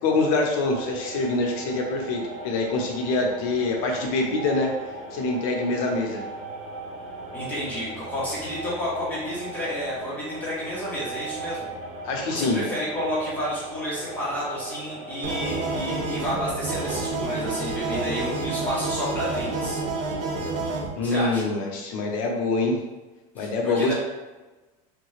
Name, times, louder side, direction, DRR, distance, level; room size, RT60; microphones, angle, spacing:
voice 1, 0.0-4.7 5.1-6.2 12.0-12.6 20.9-22.8 23.3-23.9, left 3 dB, 65° left, 1 dB, 0.8 m, -25 dB
sound 1, 0.6-20.5, right 2 dB, 60° right, 0.9 m, -38 dB
voice 2, 7.3-11.7 12.3-19.8 21.0-21.4 23.4-23.5 23.8-23.9, equal, 10° left, -9 dB, 0.8 m, -30 dB
sound 2, 15.2-20.9, right 3 dB, 45° right, 0.5 m, -29 dB
3.2 x 2.2 x 3.1 m, 1.2 s
cardioid pair, 160°, 19 cm